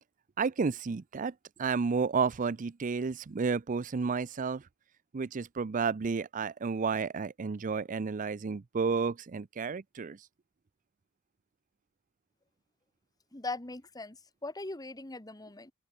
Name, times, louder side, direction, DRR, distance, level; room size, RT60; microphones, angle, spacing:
voice 1, 0.4-1.3 1.6-4.6 5.1-10.2, right 5 dB, 40° right, 0.5 m, -31 dB
voice 2, 13.3-15.7, left 2 dB, 20° left, 1.4 m, -40 dB
open air
head